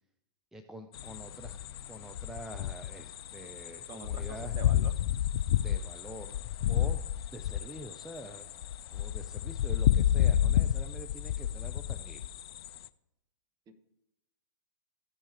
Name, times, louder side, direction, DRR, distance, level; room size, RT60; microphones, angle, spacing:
voice 1, 0.5-1.6 1.9-4.6 5.6-6.4 6.7-7.0 7.3-8.5 8.9-12.3, right 1 dB, 5° right, 6 dB, 0.4 m, -46 dB
sound 1, 0.9-12.9, left 11 dB, 60° left, 0.4 m, -31 dB
voice 2, 3.9-4.9 13.7-13.8, right 5 dB, 25° right, 9 dB, 0.9 m, -46 dB
14.5 x 5.3 x 3.3 m, 0.90 s
hypercardioid pair, 115°, 14 cm